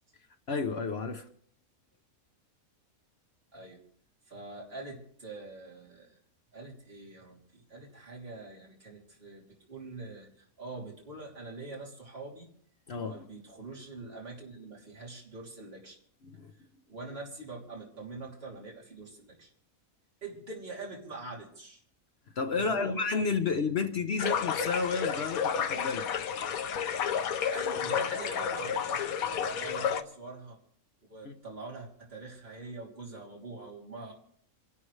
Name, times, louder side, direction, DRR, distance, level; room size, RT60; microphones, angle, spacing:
voice 1, 0.5-1.2 12.9-13.2 16.2-16.5 22.4-26.1 31.2-31.4, left 4 dB, 50° left, 1.0 m, -31 dB
voice 2, 4.2-6.2 6.5-12.5 13.1-16.0 16.6-19.5 20.2-21.8 22.6-23.0 27.5-30.6 31.1-34.1, right 3 dB, 45° right, 3.4 m, -44 dB
sound 1, 24.2-30.0, left 7 dB, 80° left, 1.2 m, -31 dB
27.0 x 12.5 x 3.2 m
omnidirectional pair, 1.5 m